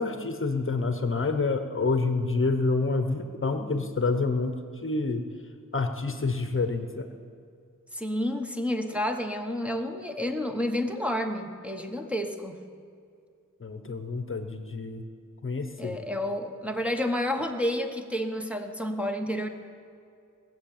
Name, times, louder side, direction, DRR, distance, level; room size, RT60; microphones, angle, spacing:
voice 1, 0.0-4.5 4.8-5.2 5.7-7.1 13.6-15.0 15.4-16.0, left 3 dB, 40° left, 8 dB, 1.0 m, -28 dB
voice 2, 7.9-12.6 15.8-19.5, left 1 dB, 5° right, 3 dB, 1.1 m, -30 dB
19.0 x 7.9 x 7.2 m, 2.4 s
wide cardioid pair, 70°, 32 cm